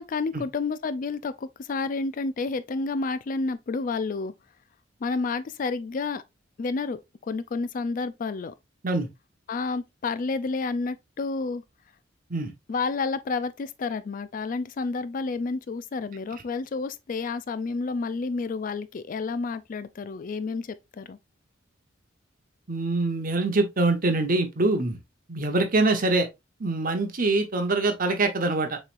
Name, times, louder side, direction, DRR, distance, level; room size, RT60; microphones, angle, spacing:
voice 1, 0.0-4.3 5.0-6.2 6.6-7.0 7.3-8.5 9.5-11.6 12.7-21.2, left 4 dB, 45° left, 0.4 m, -30 dB
voice 2, 22.7-25.0 25.3-26.3 26.6-28.8, right 2 dB, 45° right, 0.9 m, -24 dB
6.6 x 3.2 x 2.5 m
head